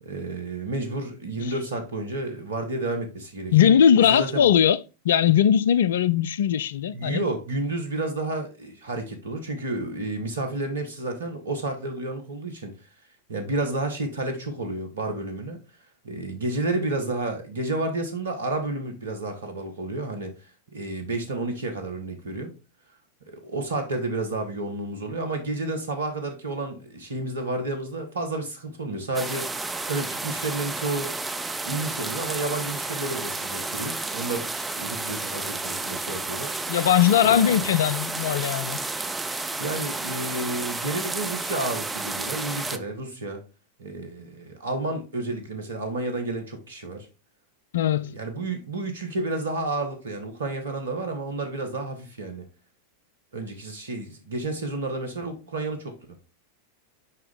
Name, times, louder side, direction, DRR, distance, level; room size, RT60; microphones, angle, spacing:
voice 1, 0.0-4.5 6.9-12.7 13.3-15.6 16.0-20.3 20.7-22.5 23.3-31.1 31.7-36.5 37.2-37.7 39.6-43.4 43.8-47.1 48.0-52.5 53.3-56.0, right 2 dB, 70° right, 1.7 m, -31 dB
voice 2, 3.5-4.8 5.0-7.2 36.7-38.8 47.7-48.1, left 9 dB, 60° left, 0.4 m, -19 dB
sound 1, 29.1-42.8, right 3 dB, 10° right, 0.6 m, -31 dB
6.5 x 5.3 x 3.8 m
figure-of-eight pair, 90°, 0 cm